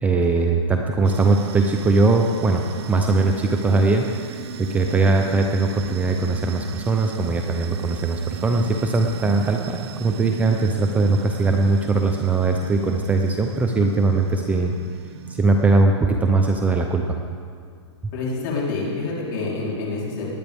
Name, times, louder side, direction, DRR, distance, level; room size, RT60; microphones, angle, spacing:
voice 1, 0.0-14.7 15.3-17.2, right 3 dB, 10° right, 3 dB, 0.5 m, -20 dB
sound 1, 1.0-15.9, right 8 dB, 60° right, 0.7 m, -37 dB
voice 2, 18.1-20.3, left 3 dB, 45° left, -4 dB, 3.7 m, -27 dB
19.0 x 10.0 x 3.5 m, 2.3 s
hypercardioid pair, 145°, 15 cm